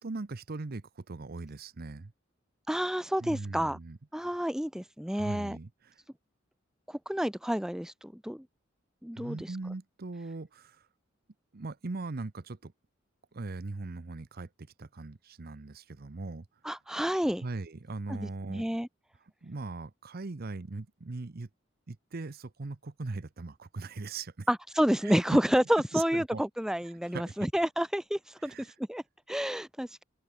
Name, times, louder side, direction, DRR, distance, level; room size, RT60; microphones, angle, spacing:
voice 1, 0.0-2.1 3.2-4.0 5.1-6.0 9.1-10.9 11.5-12.7 13.3-16.5 17.4-18.7 19.4-21.5 21.9-24.5 25.0-25.4 25.9-26.4 26.8-27.4 28.4-28.7, right 3 dB, 50° right, 0.7 m, -40 dB
voice 2, 2.7-3.8 4.1-5.6 6.9-8.4 9.0-9.6 16.6-17.4 18.1-18.9 24.5-30.0, equal, 5° right, 0.7 m, -30 dB
open air
head